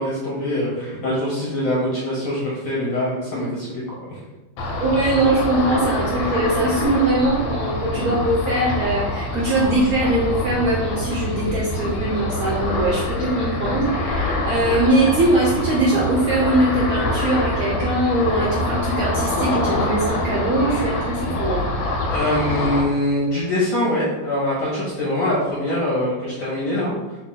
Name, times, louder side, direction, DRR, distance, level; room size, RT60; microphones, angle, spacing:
voice 1, 0.0-4.0 22.1-26.9, left 1 dB, 60° left, -5 dB, 0.9 m, -23 dB
Ocean, 4.6-22.8, left 2 dB, 90° left, 1.4 m, -25 dB
voice 2, 4.8-21.7, right 2 dB, 65° right, -5 dB, 0.9 m, -21 dB
3.1 x 2.6 x 3.7 m, 1.1 s
omnidirectional pair, 2.1 m